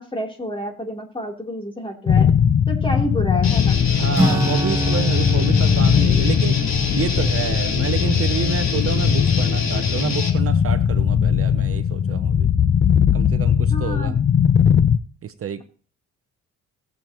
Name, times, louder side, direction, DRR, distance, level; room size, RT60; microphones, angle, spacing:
voice 1, 0.0-2.3 2.7-3.7 13.7-14.1, equal, 15° left, 3.3 m, -29 dB
sound 1, 2.1-15.0, left 8 dB, 40° left, 0.7 m, -19 dB
Guitar, 3.4-10.3, left 5 dB, 60° left, 3.7 m, -26 dB
voice 2, 4.0-6.6 6.9-12.5 13.1-14.2 15.2-15.6, right 8 dB, 50° right, 0.8 m, -28 dB
Acoustic guitar / Strum, 4.1-10.1, right 2 dB, 10° right, 1.6 m, -28 dB
20.0 x 7.2 x 3.0 m
cardioid pair, 90°, 30 cm